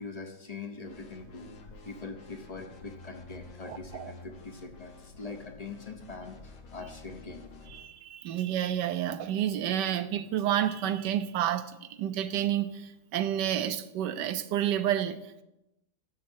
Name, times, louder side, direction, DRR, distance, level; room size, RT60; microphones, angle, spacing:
voice 1, 0.0-7.4, left 3 dB, 40° left, 0.5 m, -43 dB
sound 1, 0.8-7.9, left 3 dB, 60° left, 1.3 m, -50 dB
voice 2, 3.7-4.1 7.7-15.4, right 11 dB, 85° right, 1.3 m, -30 dB
7.4 x 6.6 x 6.2 m
omnidirectional pair, 1.8 m